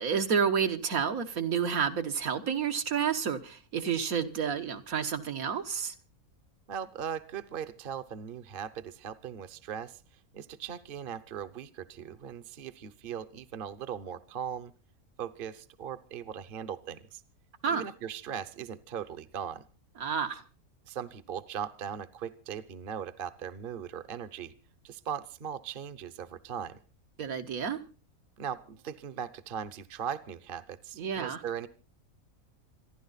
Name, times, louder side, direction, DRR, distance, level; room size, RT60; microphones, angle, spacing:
voice 1, 0.0-5.9 17.6-17.8 20.0-20.4 27.2-27.8 31.0-31.4, right 7 dB, 75° right, 1.7 m, -30 dB
voice 2, 6.7-10.0 10.3-14.7 15.2-17.2 17.7-19.6 20.9-24.5 24.8-26.8 28.4-31.7, right 8 dB, 45° right, 0.9 m, -39 dB
27.5 x 11.0 x 4.0 m
omnidirectional pair, 1.5 m